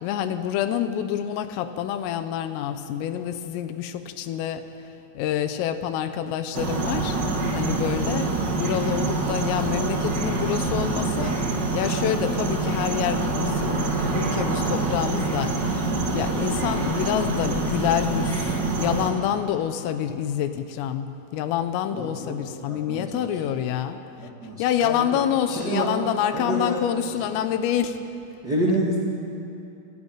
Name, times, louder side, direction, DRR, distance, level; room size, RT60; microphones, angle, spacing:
voice 1, 0.0-4.7 5.2-7.2 7.5-11.4 11.7-15.8 16.1-24.0 24.6-28.0, left 10 dB, 80° left, 9 dB, 3.6 m, -27 dB
sound 1, 6.5-19.1, right 3 dB, 75° right, 1.0 m, -26 dB
voice 2, 21.9-22.4 22.7-23.3 24.2-25.2 25.5-25.9 26.3-26.8 28.4-29.0, right 1 dB, 35° right, -4 dB, 1.5 m, -28 dB
29.0 x 12.5 x 9.0 m, 2.7 s
omnidirectional pair, 5.9 m